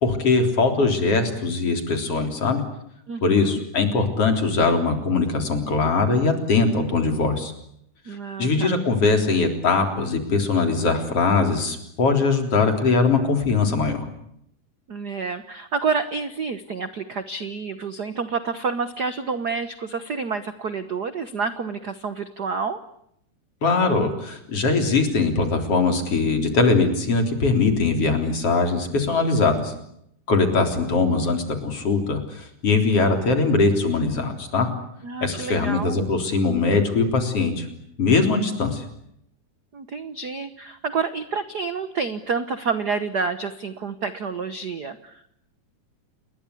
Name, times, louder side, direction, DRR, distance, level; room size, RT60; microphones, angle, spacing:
voice 1, 0.0-2.6 3.2-7.5 8.4-14.1 23.6-29.7 30.3-34.7 35.2-37.7 38.0-38.8, left 3 dB, 50° left, 5 dB, 4.5 m, -21 dB
voice 2, 3.1-3.6 8.1-8.8 14.9-22.8 35.0-36.1 39.7-45.3, right 5 dB, 65° right, 11 dB, 1.0 m, -29 dB
29.5 x 21.5 x 8.5 m, 0.74 s
omnidirectional pair, 3.5 m